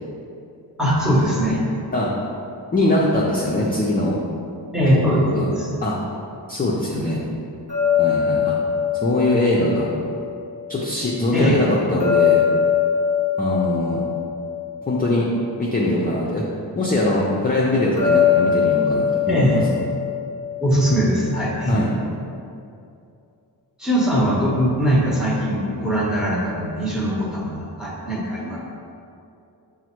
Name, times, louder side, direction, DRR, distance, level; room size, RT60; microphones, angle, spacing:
voice 1, 0.8-1.6 4.7-5.7 11.3-11.7 19.3-19.7 20.6-21.7 23.8-28.7, equal, ahead, -5 dB, 0.7 m, -21 dB
voice 2, 2.7-4.2 4.9-5.5 5.8-6.0 6.5-7.2 8.0-8.5 9.0-9.9 10.7-12.4 13.4-14.0 14.9-15.3 15.6-16.4 16.8-19.6 21.7-21.9, left 1 dB, 25° left, -5 dB, 0.4 m, -21 dB
sound 1, 7.7-10.8 12.0-15.5 18.0-21.1, left 8 dB, 65° right, 1.1 m, -22 dB
6.1 x 2.1 x 2.9 m, 2.5 s
wide cardioid pair, 115°, 42 cm